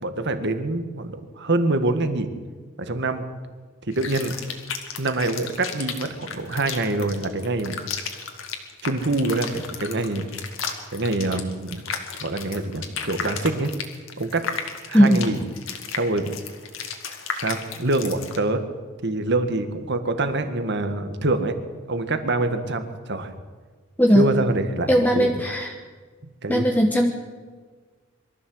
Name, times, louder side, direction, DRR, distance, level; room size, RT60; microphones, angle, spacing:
voice 1, 0.0-2.3 2.8-3.2 3.9-4.3 5.0-7.8 8.8-10.3 10.9-11.8 12.2-13.7 14.2-14.5 14.9-15.4 15.9-16.3 17.4-18.6 19.0-21.6 21.9-23.3 24.1-25.4 26.4-26.7, right 2 dB, 55° right, 8 dB, 1.7 m, -25 dB
sound 1, 3.9-18.4, left 6 dB, 70° left, 2.3 m, -34 dB
voice 2, 24.0-24.3 24.9-25.7 26.5-27.1, equal, 10° left, 1 dB, 1.3 m, -18 dB
23.0 x 14.0 x 7.9 m, 1.5 s
head